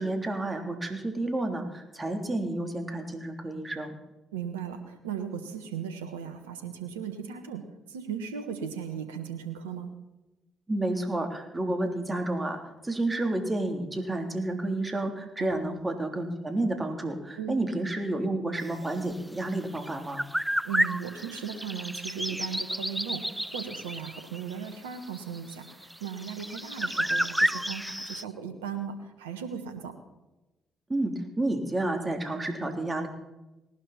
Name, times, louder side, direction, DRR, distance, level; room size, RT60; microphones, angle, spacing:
voice 1, 0.0-3.9 10.7-20.2 30.9-33.1, right 2 dB, 25° right, 4 dB, 3.4 m, -30 dB
voice 2, 4.3-10.0 15.4-15.6 17.4-17.6 20.6-29.9, right 7 dB, 90° right, 8 dB, 1.3 m, -37 dB
sound 1, 19.8-28.2, equal, 5° right, 0.4 m, -31 dB
19.0 x 12.0 x 4.3 m, 0.99 s
hypercardioid pair, 45°, 0 cm